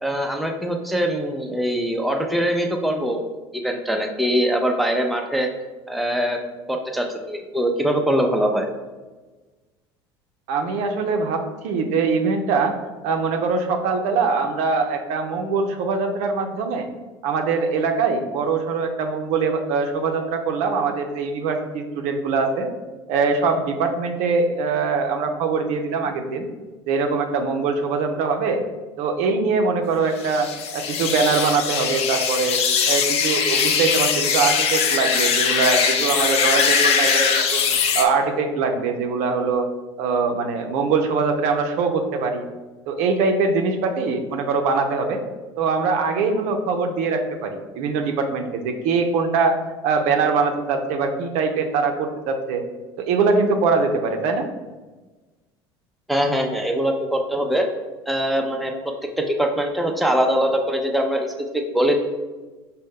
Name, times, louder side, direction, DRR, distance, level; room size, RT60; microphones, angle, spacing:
voice 1, 0.0-5.5 5.9-6.4 6.7-8.7 56.1-57.7 58.1-61.9, equal, ahead, 2 dB, 0.5 m, -22 dB
voice 2, 10.5-12.8 13.0-16.9 17.2-22.7 23.1-26.5 26.9-28.6 29.0-32.6 32.9-37.6 37.9-39.7 40.0-42.4 42.9-45.2 45.6-49.6 49.8-52.6 53.0-54.5, right 4 dB, 60° right, 5 dB, 0.5 m, -22 dB
sound 1, 30.2-38.1, left 6 dB, 50° left, 0.5 m, -21 dB
5.1 x 2.2 x 3.5 m, 1.2 s
hypercardioid pair, 75°, 13 cm